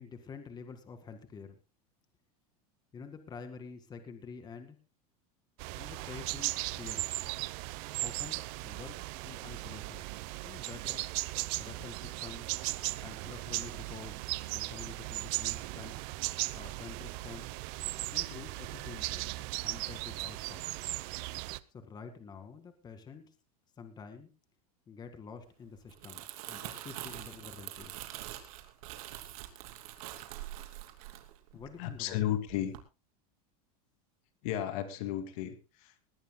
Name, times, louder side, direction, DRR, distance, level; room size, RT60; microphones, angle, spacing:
voice 1, 0.0-1.6 2.9-4.8 5.7-7.1 8.0-9.0 9.2-10.1 10.4-11.0 11.6-12.5 13.0-16.0 16.5-17.6 18.1-19.3 19.6-20.7 21.7-23.3 23.8-24.3 24.9-28.0 31.5-32.2, left 5 dB, 20° left, 7 dB, 2.0 m, -48 dB
sound 1, 5.6-21.6, right 21 dB, 55° right, 0.8 m, -37 dB
Crumpling crinkling, 25.7-32.1 32.5-32.8, right 14 dB, 70° right, 2.9 m, -44 dB
voice 2, 31.5-32.7 34.4-36.0, left 11 dB, 65° left, 9 dB, 2.3 m, -34 dB
20.5 x 17.5 x 2.2 m, 0.30 s
supercardioid pair, 145°, 19 cm